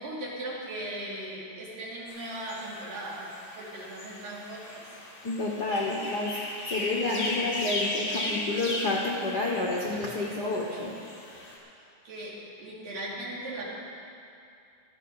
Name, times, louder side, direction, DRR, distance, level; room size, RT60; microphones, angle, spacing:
voice 1, 0.0-4.8 12.1-13.7, right 1 dB, 80° right, -6 dB, 4.4 m, -38 dB
sound 1, 2.1-11.6, left 1 dB, 40° left, 3.5 m, -36 dB
voice 2, 5.2-6.3 6.7-10.9, left 2 dB, 75° left, -4 dB, 0.9 m, -29 dB
16.5 x 14.0 x 4.1 m, 2.5 s
omnidirectional pair, 3.9 m